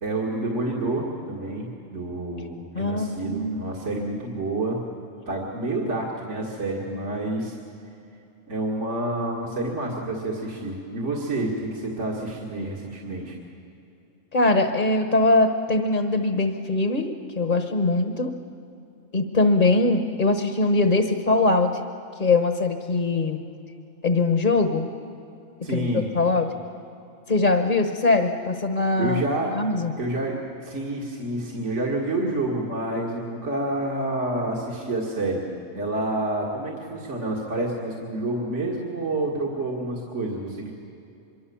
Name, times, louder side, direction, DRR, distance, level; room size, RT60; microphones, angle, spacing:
voice 1, 0.0-4.8 5.3-7.6 8.5-13.4 25.6-26.1 29.0-29.5 30.0-35.4 35.7-40.7, right 2 dB, 60° right, -2 dB, 2.6 m, -28 dB
voice 2, 2.7-3.7 14.3-18.3 19.1-21.8 22.2-23.4 24.0-24.9 25.7-26.5 27.3-29.2 29.5-29.9, left 3 dB, 40° left, 7 dB, 1.3 m, -22 dB
24.5 x 23.0 x 7.1 m, 2.7 s
omnidirectional pair, 1.4 m